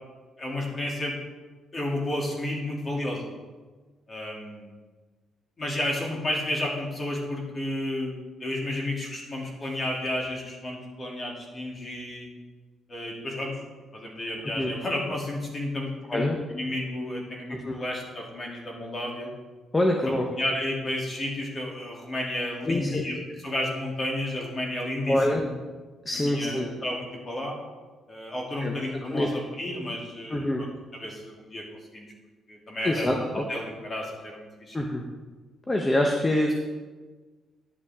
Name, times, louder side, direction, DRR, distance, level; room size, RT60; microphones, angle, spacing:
voice 1, 0.4-1.2 1.7-3.3 4.1-4.7 5.6-8.1 8.4-12.3 12.9-13.6 13.9-19.3 19.9-25.5 26.1-27.6 28.1-31.6 31.9-32.1 32.5-34.8, left 1 dB, 35° left, -2 dB, 2.7 m, -32 dB
voice 2, 19.7-20.2 22.7-23.0 25.1-25.4 26.0-26.7 28.6-28.7 29.1-29.3 30.3-30.6 32.8-33.4 34.7-35.0 35.7-36.5, left 1 dB, 20° left, 1 dB, 1.0 m, -25 dB
10.5 x 8.5 x 3.6 m, 1.3 s
cardioid pair, 90°, 0 cm